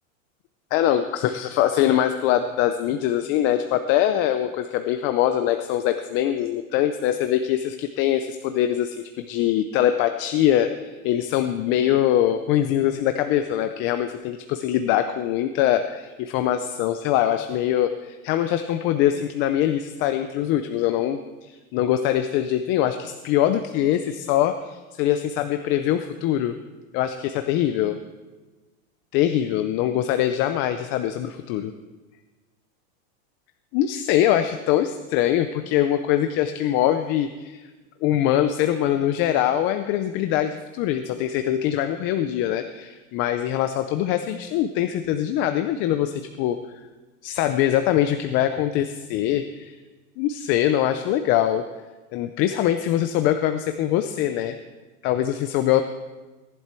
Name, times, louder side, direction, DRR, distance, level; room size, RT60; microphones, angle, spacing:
voice 1, 0.7-26.6 26.9-28.0 29.1-31.7 33.7-37.6 38.0-46.6 47.2-49.8 50.2-51.6 52.1-54.6 55.0-55.8, left 11 dB, 30° left, 8 dB, 0.5 m, -23 dB
18.0 x 11.0 x 4.5 m, 1.2 s
supercardioid pair, 150°, 41 cm